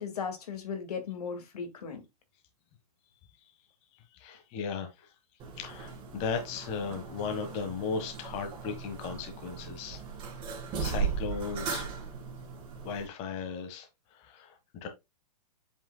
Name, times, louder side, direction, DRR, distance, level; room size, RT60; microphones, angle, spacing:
voice 1, 0.0-2.0, left 6 dB, 75° left, 2.0 m, -36 dB
voice 2, 4.2-4.9 5.6-10.0 10.8-11.8 12.8-13.9 14.2-14.5 14.8-14.9, left 5 dB, 35° left, 1.4 m, -36 dB
sound 1, 5.4-13.1, right 5 dB, 25° right, 2.1 m, -37 dB
7.9 x 5.5 x 2.2 m
hypercardioid pair, 135°, 20 cm